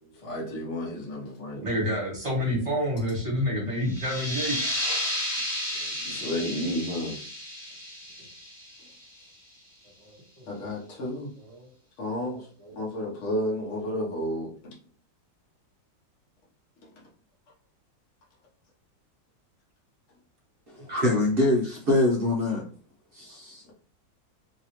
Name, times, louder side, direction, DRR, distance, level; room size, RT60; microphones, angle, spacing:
voice 1, 0.2-1.6 6.0-7.2 10.5-11.3 12.0-12.5 12.7-14.5, equal, 50° left, 1.1 m, -31 dB
voice 2, 1.6-4.6 5.7-6.2 10.0-10.5 11.5-11.7 12.3-12.9 20.8-20.9, equal, 20° right, 1.1 m, -30 dB
sound 1, 3.8-9.2, left 1 dB, 10° left, 1.0 m, -32 dB
voice 3, 20.9-22.7 23.1-23.6, left 2 dB, 60° right, 0.5 m, -24 dB
3.1 x 2.9 x 2.9 m
omnidirectional pair, 2.0 m